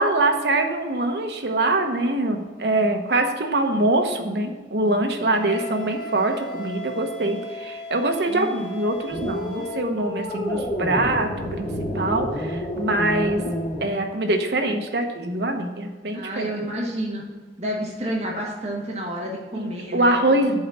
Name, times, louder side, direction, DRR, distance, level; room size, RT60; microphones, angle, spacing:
voice 1, 0.0-11.3 11.6-11.7 11.9-13.4 13.8-16.5 19.5-20.6, right 2 dB, 65° right, 4 dB, 1.0 m, -23 dB
Wind instrument woodwind instrument, 5.3-9.9, left 1 dB, 85° left, 2.4 m, -36 dB
sound 1, 9.1-13.9, equal, 45° left, 2.2 m, -29 dB
voice 2, 16.1-17.2 17.6-20.2, right 1 dB, 40° right, -2 dB, 1.5 m, -29 dB
7.8 x 4.2 x 6.1 m, 1.4 s
head